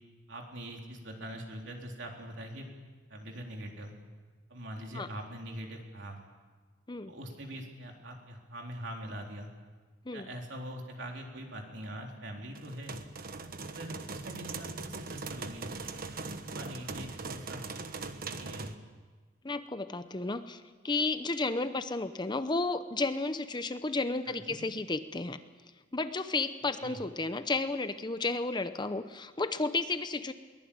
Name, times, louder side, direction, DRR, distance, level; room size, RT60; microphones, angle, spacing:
voice 1, 0.3-2.7 3.1-3.9 4.5-6.2 7.1-9.5 10.1-13.0 13.6-15.7 16.3-17.6 18.3-18.7 24.3-24.6 26.8-27.0, right 1 dB, 65° right, 1 dB, 3.9 m, -43 dB
sound 1, 12.6-18.7, right 3 dB, 50° right, 1.2 m, -40 dB
voice 2, 19.4-25.4 25.9-30.3, left 3 dB, 25° left, 11 dB, 0.8 m, -32 dB
22.5 x 19.0 x 8.7 m, 1.4 s
head